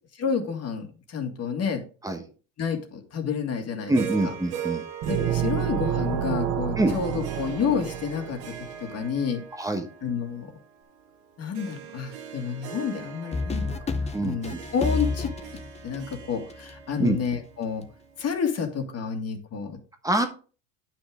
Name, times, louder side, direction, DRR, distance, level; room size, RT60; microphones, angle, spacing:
voice 1, 0.2-1.8 2.6-4.3 5.1-9.4 10.0-10.5 11.4-15.3 15.8-17.8 18.2-19.8, left 6 dB, 35° left, 5 dB, 2.0 m, -30 dB
voice 2, 3.9-4.8 6.8-6.9 9.6-9.9 14.1-14.6 17.0-17.2 20.0-20.3, right 1 dB, 10° right, 6 dB, 1.1 m, -25 dB
Harp, 3.9-18.3, right 8 dB, 80° right, 2.1 m, -40 dB
sound 1, 5.0-8.7, right 10 dB, 40° right, 0.8 m, -29 dB
sound 2, 13.3-16.7, left 3 dB, 15° left, 0.7 m, -29 dB
9.7 x 6.0 x 3.6 m, 0.37 s
supercardioid pair, 125°, 43 cm